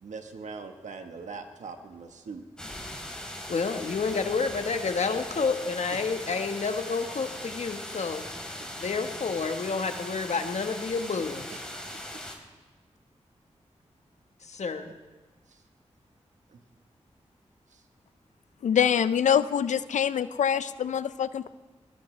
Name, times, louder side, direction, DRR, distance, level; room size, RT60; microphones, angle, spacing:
voice 1, 0.0-2.4 5.9-6.0 11.5-11.9 16.5-16.6 17.7-17.8, right 4 dB, 90° right, 6 dB, 1.3 m, -41 dB
sound 1, 2.6-12.3, left 1 dB, 5° left, 4.0 m, -40 dB
voice 2, 3.5-8.3 8.7-11.5 14.4-14.9, left 4 dB, 70° left, 6 dB, 1.4 m, -29 dB
voice 3, 18.6-21.5, left 8 dB, 85° left, 14 dB, 0.5 m, -25 dB
20.5 x 18.5 x 3.3 m, 1.3 s
cardioid pair, 45°, 12 cm